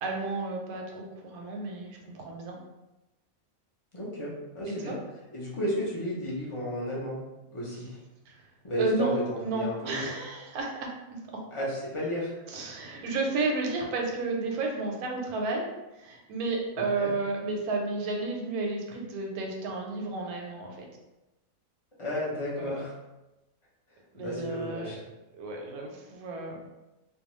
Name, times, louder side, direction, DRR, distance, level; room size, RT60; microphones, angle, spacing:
voice 1, 0.0-2.6 4.7-4.9 8.3-8.4 8.8-10.9 12.5-15.7 16.0-20.9 22.6-22.7 24.1-25.0 25.4-26.6, right 3 dB, 90° right, 0 dB, 1.1 m, -32 dB
voice 2, 3.9-5.0 5.3-7.2 7.5-8.0 8.6-10.1 11.5-12.3 17.0-17.1 22.0-22.9 24.1-25.0, equal, 40° left, -6 dB, 0.4 m, -33 dB
2.6 x 2.2 x 2.9 m, 1.0 s
omnidirectional pair, 1.5 m